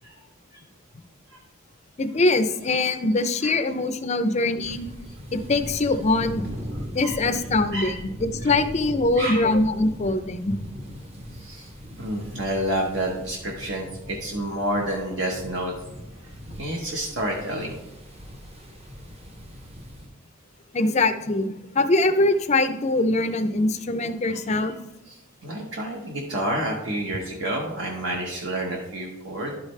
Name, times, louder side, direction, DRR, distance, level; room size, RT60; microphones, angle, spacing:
voice 1, 2.0-4.9 5.3-6.4 6.9-10.5 20.7-24.7, left 2 dB, 35° left, 9 dB, 0.5 m, -23 dB
sound 1, 4.6-20.1, equal, 30° right, 0.8 m, -39 dB
voice 2, 9.2-9.5 11.4-11.7 12.0-15.7 16.6-17.8 24.3-24.4 25.1-29.5, right 1 dB, 60° right, -1 dB, 1.0 m, -29 dB
11.5 x 4.9 x 3.2 m, 0.91 s
head